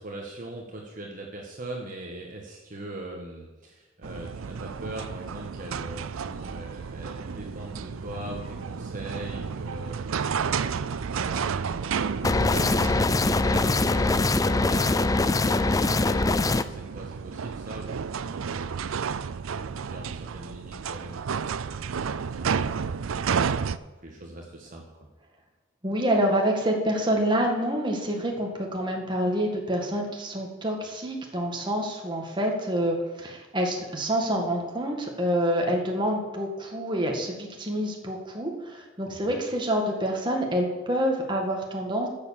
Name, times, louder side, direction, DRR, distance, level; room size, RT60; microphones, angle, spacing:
voice 1, 0.0-10.3 11.0-18.8 19.5-23.0 23.7-24.9 39.1-39.4, right 1 dB, 40° right, 0 dB, 1.4 m, -41 dB
sound 1, 4.0-23.8, right 6 dB, 85° right, 0.5 m, -32 dB
sound 2, 12.2-16.6, left 2 dB, 15° left, 0.3 m, -23 dB
voice 2, 25.8-42.1, equal, 25° right, 1 dB, 1.9 m, -27 dB
13.0 x 7.1 x 7.3 m, 1.1 s
head